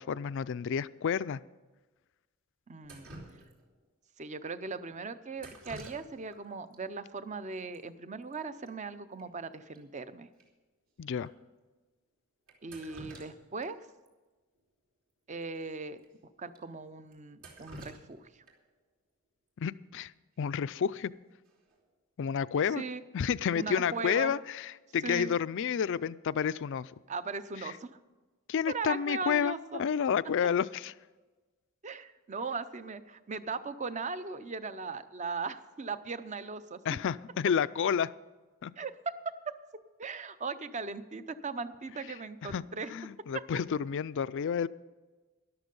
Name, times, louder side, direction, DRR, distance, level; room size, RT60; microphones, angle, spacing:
voice 1, 0.0-1.4 11.0-11.3 19.6-20.1 20.4-21.1 22.2-22.8 23.1-26.9 28.5-30.9 36.9-38.1 38.6-38.7 42.4-42.6 42.9-44.7, left 7 dB, 60° left, 17 dB, 0.4 m, -30 dB
voice 2, 2.7-3.1 4.2-10.3 12.6-13.8 15.3-16.0 16.4-18.3 22.8-23.0 23.5-24.3 25.0-25.3 27.1-28.0 28.7-29.8 31.8-37.0 38.8-39.6 40.0-42.9 43.3-43.4, right 4 dB, 35° right, 13 dB, 0.6 m, -38 dB
Drip, 2.8-3.8 5.4-6.4 6.7-6.8 7.7-7.8 8.1-8.3 8.7-8.8 9.2-9.3 9.7-9.8 10.4-10.5 11.2-11.3 12.5-13.7 14.1-14.2 15.5-15.6 16.0-16.1 16.6-16.7 17.1-18.7 20.7-21.0 21.5-21.8, right 1 dB, 70° right, 3.1 m, -50 dB
13.0 x 11.5 x 5.3 m, 1.2 s
head